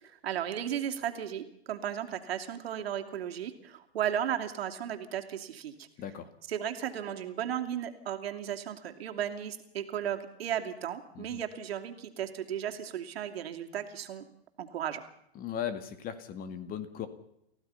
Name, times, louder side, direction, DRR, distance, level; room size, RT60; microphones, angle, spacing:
voice 1, 0.0-5.9 6.5-14.2 14.6-15.0, right 10 dB, 70° right, 5 dB, 2.8 m, -35 dB
voice 2, 6.0-6.3 11.2-11.4 15.4-17.1, left 9 dB, 25° left, 10 dB, 2.1 m, -37 dB
29.0 x 15.5 x 5.7 m, 0.77 s
hypercardioid pair, 130°, 32 cm